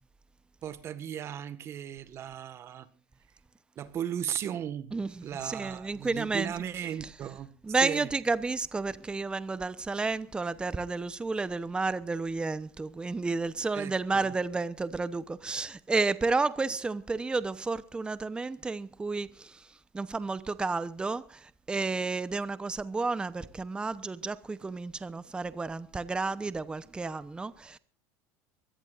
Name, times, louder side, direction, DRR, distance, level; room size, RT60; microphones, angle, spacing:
voice 1, 0.6-2.9 3.7-5.0 5.2-7.5 7.8-8.1 13.7-14.3, right 9 dB, 40° right, 1.7 m, -36 dB
voice 2, 5.4-6.5 7.6-19.6 19.9-27.8, right 3 dB, 15° right, 0.9 m, -31 dB
23.5 x 17.5 x 2.6 m
supercardioid pair, 110°, 7 cm